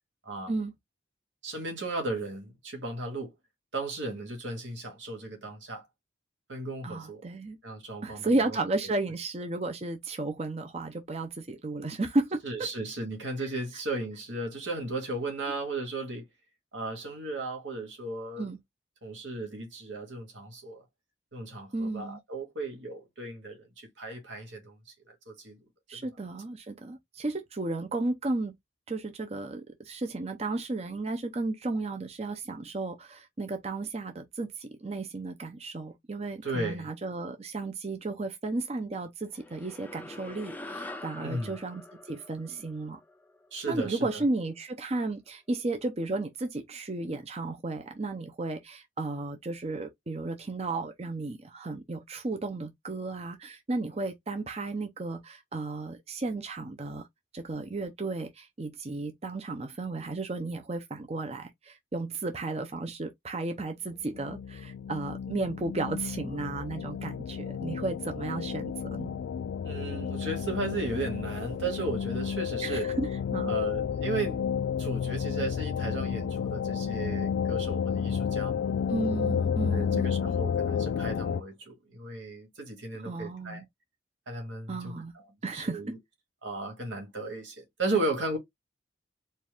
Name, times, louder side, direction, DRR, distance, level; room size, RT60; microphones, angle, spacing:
voice 1, 1.4-3.3 3.7-5.8 6.5-7.2 7.6-8.6 12.4-16.3 16.7-18.5 19.0-20.8 21.3-24.8 25.0-25.6 25.9-26.0 36.4-36.9 41.2-41.6 43.5-44.2 69.6-72.9 73.4-74.4 74.8-78.6 79.7-83.6 84.3-86.0 86.4-88.4, right 2 dB, 85° right, 1.9 m, -35 dB
voice 2, 6.8-7.6 8.0-12.7 13.4-13.5 18.4-18.6 21.7-22.2 25.9-28.5 28.9-41.8 42.1-43.0 43.7-57.1 57.3-69.2 72.6-73.5 78.9-80.3 83.0-83.6 84.7-85.1 85.4-85.8, right 2 dB, 35° right, 0.6 m, -34 dB
sound 1, 39.3-44.0, left 2 dB, 10° left, 0.5 m, -45 dB
sound 2, 64.1-81.4, left 7 dB, 80° left, 0.3 m, -31 dB
4.5 x 2.4 x 3.5 m
head